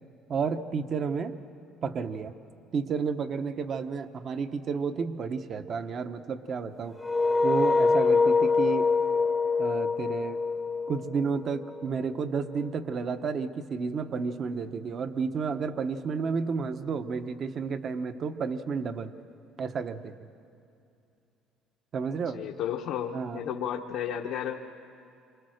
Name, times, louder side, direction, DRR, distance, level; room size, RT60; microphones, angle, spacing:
voice 1, 0.3-1.4 1.8-2.3 2.7-7.0 7.4-8.9 9.6-10.4 10.9-19.1 19.6-20.2 21.9-22.4 23.1-23.4, right 5 dB, 40° right, 10 dB, 1.0 m, -31 dB
sound 1, 7.0-11.8, left 4 dB, 10° left, 0.9 m, -25 dB
voice 2, 22.3-24.6, left 9 dB, 75° left, 1 dB, 1.1 m, -33 dB
27.5 x 25.0 x 6.5 m, 2.6 s
cardioid pair, 140°, 0 cm